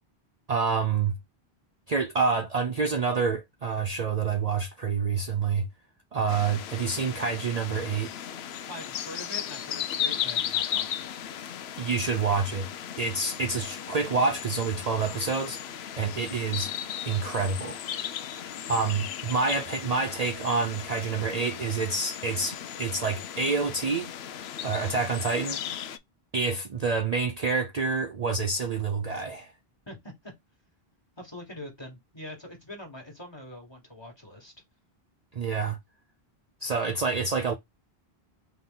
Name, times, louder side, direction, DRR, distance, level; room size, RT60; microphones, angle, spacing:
voice 1, 0.5-1.2 1.9-5.7 6.1-8.1 11.8-12.7 13.0-15.6 16.0-16.7 17.1-17.8 18.7-24.1 24.6-25.6 26.3-29.5 35.3-35.8 36.6-37.5, right 4 dB, 45° right, 0.6 m, -27 dB
sound 1, 6.3-26.0, left 9 dB, 85° left, 0.8 m, -36 dB
voice 2, 8.7-11.1 29.9-30.3 31.2-34.5, left 1 dB, 25° left, 1.6 m, -43 dB
3.9 x 3.0 x 3.8 m
omnidirectional pair, 1.0 m